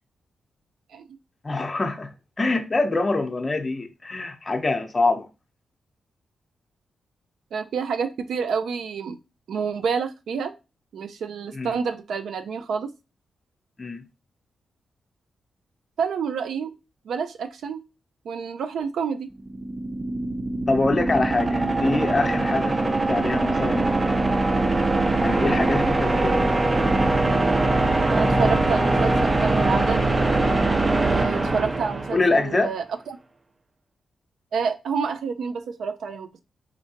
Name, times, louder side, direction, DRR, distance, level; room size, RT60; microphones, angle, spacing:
voice 1, 1.4-5.3 11.5-11.8 13.8-14.0 20.7-24.5 25.2-26.7 32.1-32.7, left 3 dB, 30° left, 0.7 m, -25 dB
voice 2, 7.5-9.2 9.5-10.5 10.9-12.9 16.0-16.7 17.0-17.8 18.2-19.3 27.6-30.0 31.0-33.2 34.5-36.4, right 6 dB, 80° right, 0.5 m, -28 dB
sound 1, 19.4-32.5, right 2 dB, 25° right, 0.4 m, -22 dB
4.3 x 2.7 x 2.8 m
cardioid pair, 110°, 0 cm